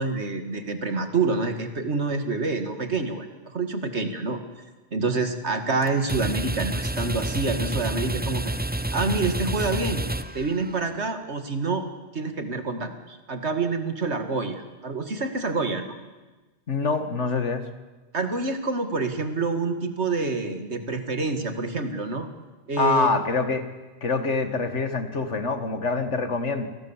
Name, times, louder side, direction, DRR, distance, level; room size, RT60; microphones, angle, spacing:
voice 1, 0.0-4.4 4.9-8.5 8.9-10.0 10.3-11.8 12.1-16.0 18.1-22.3 22.7-23.1, right 3 dB, 70° right, 7 dB, 2.4 m, -27 dB
sound 1, 5.8-11.0, right 1 dB, 10° right, 0.6 m, -29 dB
voice 2, 16.7-17.6 22.8-23.7 24.0-26.7, left 4 dB, 85° left, 9 dB, 2.1 m, -25 dB
27.5 x 20.0 x 7.4 m, 1.2 s
omnidirectional pair, 1.2 m